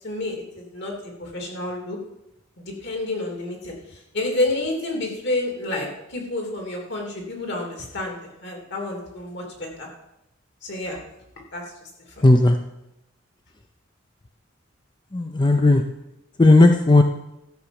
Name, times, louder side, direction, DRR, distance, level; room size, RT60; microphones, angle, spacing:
voice 1, 0.0-2.0 2.6-9.9 10.6-11.0 11.5-11.9 12.2-12.3, left 2 dB, 65° left, 1 dB, 3.0 m, -29 dB
voice 2, 12.2-12.6 15.1-15.8 16.4-17.0, left 2 dB, 25° left, 5 dB, 0.6 m, -14 dB
13.0 x 5.8 x 7.1 m, 0.87 s
head